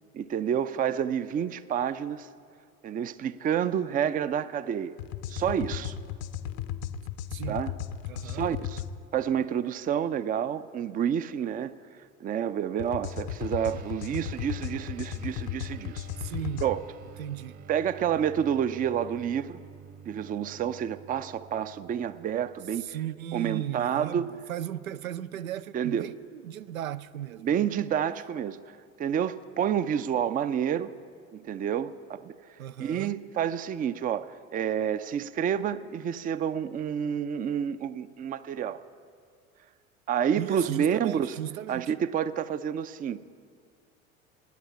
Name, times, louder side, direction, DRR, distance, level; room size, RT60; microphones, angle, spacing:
voice 1, 0.1-2.3 2.8-5.0 5.3-6.0 7.5-7.7 8.2-8.8 9.1-11.7 12.2-16.1 16.6-16.8 17.7-19.6 20.1-22.8 23.3-24.3 25.7-26.1 27.4-30.9 31.3-32.3 32.8-38.8 40.1-41.3 41.7-43.2, right 8 dB, 20° right, 0.5 m, -29 dB
sound 1, 5.0-8.9 12.8-16.7, left 10 dB, 55° left, 0.8 m, -35 dB
voice 2, 8.1-8.5 16.2-16.7 17.2-17.6 22.8-27.7 32.6-33.2 40.4-41.8, right 11 dB, 80° right, 0.5 m, -36 dB
sound 2, 13.4-23.1, right 7 dB, 40° right, 1.1 m, -50 dB
17.5 x 9.2 x 8.4 m
figure-of-eight pair, 70°, 41 cm